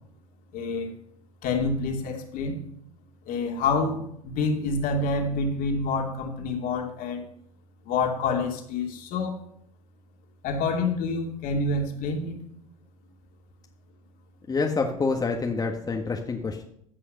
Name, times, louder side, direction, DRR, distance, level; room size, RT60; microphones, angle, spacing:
voice 1, 0.5-0.9 1.4-2.6 3.3-7.2 7.8-9.4 10.4-12.4, left 3 dB, 50° left, 2 dB, 2.7 m, -27 dB
voice 2, 14.5-16.6, left 4 dB, 20° left, 2 dB, 1.5 m, -27 dB
15.0 x 5.6 x 6.7 m, 0.72 s
hypercardioid pair, 80°, 18 cm